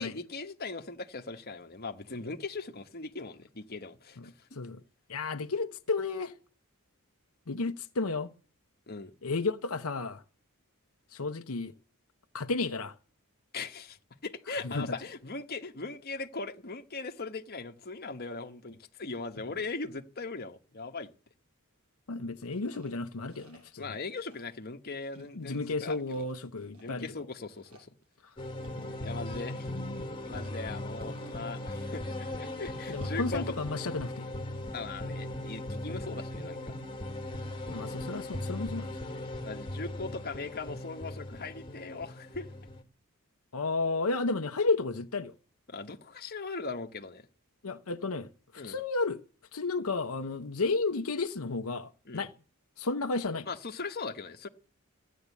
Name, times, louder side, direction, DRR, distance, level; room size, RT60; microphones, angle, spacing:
voice 1, 0.0-4.5 8.9-9.1 13.5-21.1 23.8-26.3 26.8-27.9 29.0-29.7 30.2-33.5 34.7-36.7 39.4-42.5 45.7-47.3 48.6-48.8 52.0-52.3 53.5-54.5, left 3 dB, 45° left, 1.3 m, -39 dB
voice 2, 5.1-6.3 7.5-8.3 9.2-10.2 11.1-11.7 12.3-13.0 14.6-15.0 22.1-23.9 25.2-27.1 28.8-28.9 29.5-30.1 32.9-34.3 35.9-36.0 37.7-38.9 43.5-45.3 47.6-49.2 49.5-52.3 52.8-53.5, left 3 dB, 80° left, 0.9 m, -32 dB
sound 1, 22.4-23.9 24.2-24.7 25.0-27.2 27.5-33.6, right 3 dB, 75° right, 6.8 m, -62 dB
sound 2, 28.4-42.8, left 1 dB, 20° left, 1.9 m, -38 dB
15.0 x 10.5 x 8.3 m
head